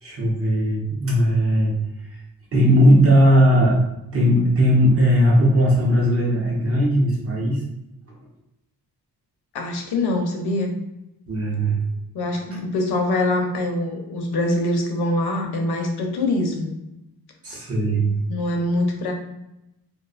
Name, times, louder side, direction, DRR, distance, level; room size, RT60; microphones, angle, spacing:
voice 1, 0.0-1.8 2.5-3.8 4.1-7.6 11.3-11.8 12.5-12.6 17.4-18.1, equal, 35° right, -2 dB, 0.7 m, -18 dB
voice 2, 9.5-10.7 12.1-16.7 18.3-19.1, left 2 dB, 75° left, 3 dB, 0.6 m, -24 dB
2.5 x 2.3 x 2.3 m, 0.88 s
wide cardioid pair, 135°, 39 cm